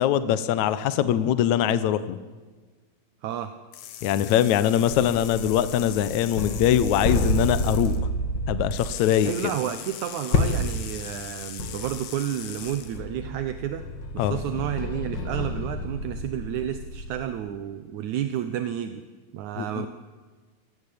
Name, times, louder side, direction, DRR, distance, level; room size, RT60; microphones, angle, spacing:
voice 1, 0.0-2.2 4.0-8.0 8.5-9.3 14.2-14.4 19.6-19.9, left 10 dB, 65° left, 13 dB, 2.0 m, -22 dB
voice 2, 3.2-3.5 9.2-13.8 14.1-19.0 19.3-19.9, right 10 dB, 65° right, 9 dB, 2.0 m, -31 dB
sound 1, 3.7-8.0 8.7-13.0, left 10 dB, 85° left, 3.4 m, -40 dB
sound 2, 6.4-9.0 10.3-10.8 11.2-11.3 11.6-12.1 12.6-17.3, left 1 dB, 35° left, 2.0 m, -29 dB
27.0 x 18.5 x 8.6 m, 1.4 s
omnidirectional pair, 4.3 m